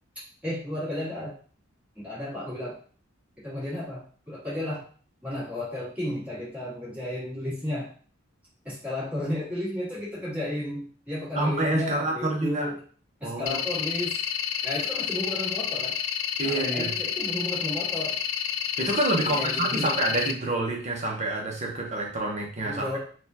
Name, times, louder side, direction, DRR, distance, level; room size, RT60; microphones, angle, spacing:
voice 1, 0.4-1.4 2.0-2.8 3.4-4.8 5.2-7.9 8.6-12.8 13.2-14.2 14.6-16.0 16.4-18.2 19.2-19.9 22.6-23.0, left 1 dB, 10° right, -9 dB, 1.8 m, -33 dB
voice 2, 11.3-12.7 13.2-13.6 16.4-16.9 18.8-23.0, right 2 dB, 35° right, 0 dB, 0.9 m, -27 dB
sound 1, 13.5-20.3, left 8 dB, 75° left, 0.3 m, -30 dB
4.1 x 2.4 x 2.8 m, 0.43 s
head